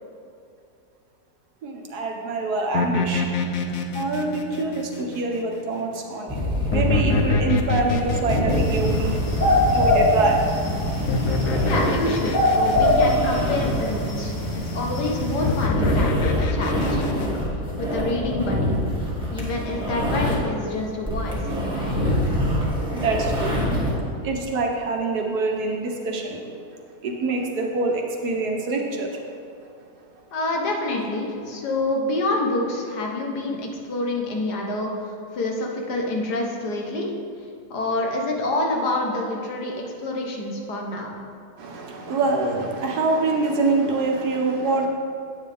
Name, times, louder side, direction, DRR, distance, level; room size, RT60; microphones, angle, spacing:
voice 1, 1.6-3.2 3.9-6.4 6.7-9.2 9.7-10.4 22.9-23.6 24.2-26.5 27.0-29.1 41.6-44.9, right 3 dB, 75° right, 1 dB, 1.6 m, -25 dB
sound 1, 2.7-5.6 6.7-10.2 11.1-13.7 15.4-17.3, left 4 dB, 65° left, 1.0 m, -27 dB
sound 2, 6.3-20.6 20.9-24.0, equal, 5° right, 1.7 m, -26 dB
sound 3, 8.5-15.7, left 1 dB, 50° left, 1.9 m, -23 dB
voice 2, 11.6-14.3 14.7-17.3 17.8-18.8 19.3-22.0 30.3-37.1 37.7-41.1, left 2 dB, 90° left, 0 dB, 1.8 m, -27 dB
9.3 x 8.6 x 3.5 m, 2.4 s
omnidirectional pair, 1.7 m